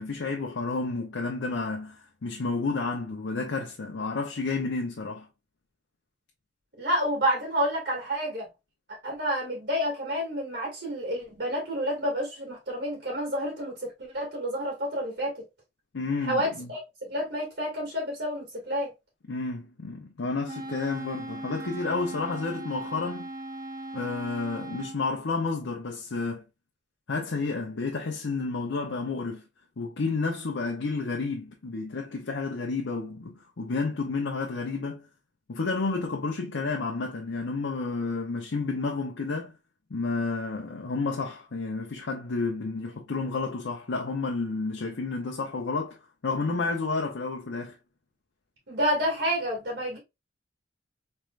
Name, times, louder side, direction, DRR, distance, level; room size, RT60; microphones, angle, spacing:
voice 1, 0.0-5.3 15.9-16.7 19.3-23.3 23.9-26.4 27.1-29.4 29.8-35.1 35.5-39.5 39.9-46.0 46.2-47.8, left 3 dB, 75° left, 0.7 m, -31 dB
voice 2, 6.8-8.5 9.0-15.4 16.3-18.9 48.7-50.0, equal, 65° right, 2.1 m, -29 dB
Wind instrument woodwind instrument, 20.5-25.0, right 2 dB, 45° right, 0.4 m, -38 dB
4.3 x 3.3 x 2.4 m
head